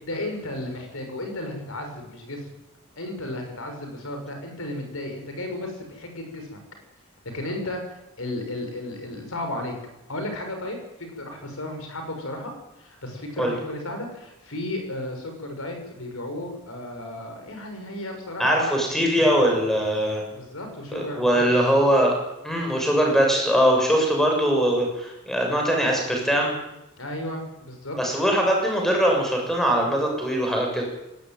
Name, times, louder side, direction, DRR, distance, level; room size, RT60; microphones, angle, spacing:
voice 1, 0.0-2.5 3.0-6.6 7.3-9.7 10.1-12.5 12.8-18.8 20.3-21.6 27.0-28.0, left 1 dB, 65° left, 4 dB, 6.3 m, -34 dB
voice 2, 18.4-20.2 20.9-22.1 22.4-26.5 28.0-30.8, equal, ahead, 1 dB, 7.0 m, -21 dB
19.5 x 18.5 x 9.3 m, 0.92 s
head